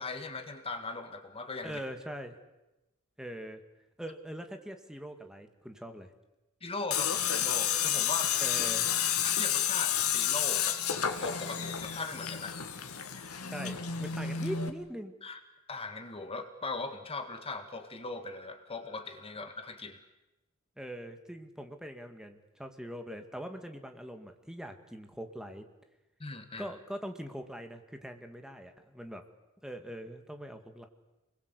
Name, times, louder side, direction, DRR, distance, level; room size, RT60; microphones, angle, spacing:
voice 1, 0.0-1.8 6.6-8.4 9.2-10.8 11.2-12.6 15.2-15.4 15.7-20.0 26.2-26.7, left 3 dB, 25° left, 8 dB, 1.8 m, -39 dB
voice 2, 1.6-2.4 3.2-3.6 4.0-6.1 8.4-8.9 13.5-15.1 20.8-25.7 26.6-29.2 29.6-30.9, equal, 5° right, 6 dB, 2.0 m, -42 dB
Tools, 6.9-14.7, left 9 dB, 80° left, 2.3 m, -30 dB
29.0 x 21.5 x 8.3 m, 0.99 s
head